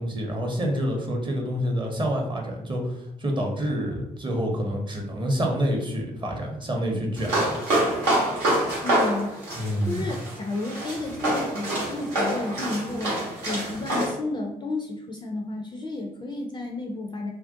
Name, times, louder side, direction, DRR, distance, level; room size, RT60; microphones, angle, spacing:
voice 1, 0.0-7.7 9.6-10.2, equal, 25° right, 1 dB, 0.7 m, -27 dB
sound 1, 7.2-14.1, right 1 dB, 80° right, 0.8 m, -26 dB
voice 2, 8.8-17.3, left 2 dB, 20° left, 1 dB, 0.4 m, -32 dB
2.5 x 2.0 x 2.5 m, 0.81 s
figure-of-eight pair, 40°, 21 cm